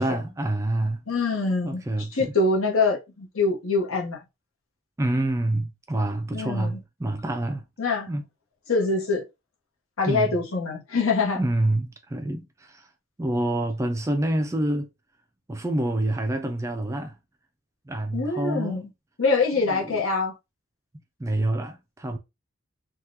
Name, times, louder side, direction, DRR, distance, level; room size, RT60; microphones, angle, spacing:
voice 1, 0.0-1.0 1.6-2.3 5.0-7.6 8.1-8.2 10.1-10.4 11.3-12.9 13.2-14.9 15.5-17.2 17.9-18.9 19.5-20.0 21.2-22.2, right 1 dB, 15° right, 0.3 m, -27 dB
voice 2, 1.1-4.2 6.3-6.8 7.8-8.1 8.7-9.2 10.0-11.4 18.1-18.9 19.2-20.3, left 3 dB, 75° left, 1.1 m, -24 dB
3.5 x 2.3 x 2.8 m
head